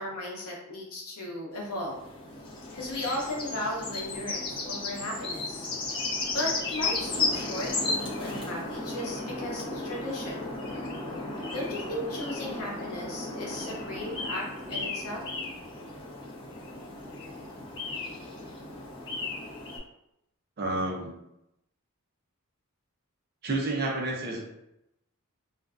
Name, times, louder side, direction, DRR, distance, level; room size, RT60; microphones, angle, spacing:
voice 1, 0.0-2.0 2.7-5.6 6.3-10.5 11.5-15.2, left 1 dB, 75° left, -2 dB, 0.7 m, -36 dB
sound 1, 1.6-19.8, left 3 dB, 25° left, 0.6 m, -35 dB
voice 2, 20.6-21.1 23.4-24.4, right 2 dB, 45° right, -1 dB, 0.5 m, -30 dB
2.4 x 2.2 x 2.3 m, 0.84 s
head